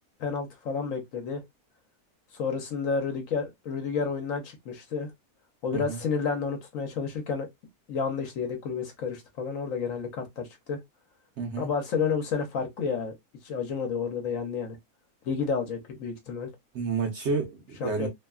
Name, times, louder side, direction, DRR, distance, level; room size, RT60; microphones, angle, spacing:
voice 1, 0.2-1.4 2.3-5.1 5.6-7.5 7.9-10.8 11.6-13.1 13.4-14.8 15.2-16.5 17.8-18.1, left 5 dB, 65° left, 1.0 m, -30 dB
voice 2, 11.4-11.7 16.7-18.1, right 4 dB, 60° right, 0.8 m, -30 dB
2.8 x 2.2 x 2.3 m
omnidirectional pair, 1.6 m